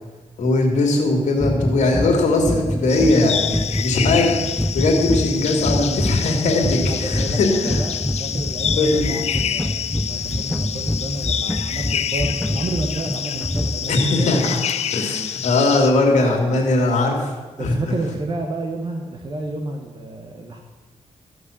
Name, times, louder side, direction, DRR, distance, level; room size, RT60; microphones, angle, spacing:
voice 1, 0.4-3.5 3.8-4.4 4.7-7.9 8.8-9.1 13.9-14.6 14.9-17.3 17.6-17.8, left 2 dB, 90° left, 1 dB, 2.6 m, -19 dB
sound 1, 1.4-14.1, left 1 dB, 5° left, 0.3 m, -26 dB
sound 2, 2.9-15.9, left 9 dB, 65° left, 0.5 m, -27 dB
voice 2, 6.8-14.5 17.6-20.6, right 2 dB, 40° right, 2 dB, 1.1 m, -31 dB
14.0 x 6.1 x 7.3 m, 1.3 s
wide cardioid pair, 130°, 12 cm